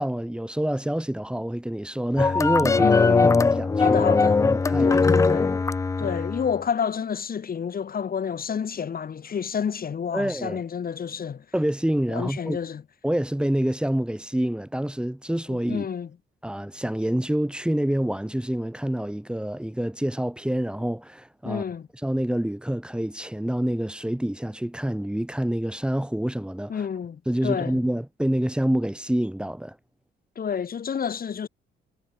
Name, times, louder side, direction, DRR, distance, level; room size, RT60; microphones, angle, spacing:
voice 1, 0.0-2.8 3.2-5.2 6.1-6.2 10.1-10.6 11.5-12.6 13.0-15.9 16.4-21.6 22.0-26.8 27.3-29.8, right 1 dB, 5° right, 3.3 m, -27 dB
sound 1, 2.2-6.6, left 4 dB, 15° left, 0.3 m, -20 dB
voice 2, 2.6-3.5 3.8-4.4 4.8-5.6 6.0-11.4 12.1-12.8 15.5-16.1 21.4-21.9 26.7-27.8 30.3-31.5, left 7 dB, 45° left, 3.3 m, -29 dB
cardioid pair, 90°, 20 cm